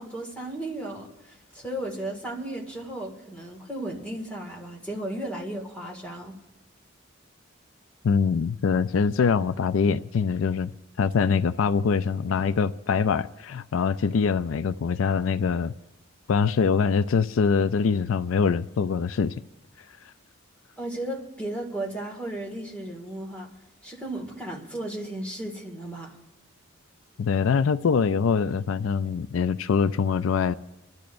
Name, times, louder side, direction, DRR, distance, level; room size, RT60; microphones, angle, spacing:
voice 1, 0.0-6.4 20.8-23.5 23.8-26.2, right 1 dB, 5° left, 2.0 m, -35 dB
voice 2, 8.0-10.7 11.0-15.7 16.3-19.3 27.2-30.5, left 5 dB, 80° left, 0.4 m, -24 dB
27.5 x 12.0 x 2.6 m
head